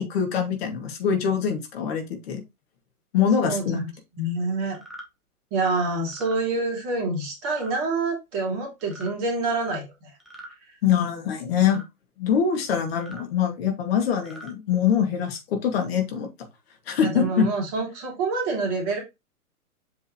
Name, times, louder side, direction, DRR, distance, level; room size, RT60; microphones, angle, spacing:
voice 1, 0.0-2.4 3.1-3.8 10.8-11.8 12.2-16.3 16.9-17.5, left 8 dB, 40° left, 4 dB, 2.3 m, -24 dB
voice 2, 3.4-3.9 4.2-4.8 5.5-9.8 17.0-19.0, right 3 dB, 30° right, 1 dB, 2.8 m, -27 dB
sound 1, 4.7-5.1 6.0-6.4 7.4-7.7 8.8-9.1 10.2-10.6 11.6-11.9 12.9-13.3 14.1-14.5, right 1 dB, ahead, 0.6 m, -43 dB
7.7 x 4.5 x 3.0 m, 0.22 s
figure-of-eight pair, 120°, 45 cm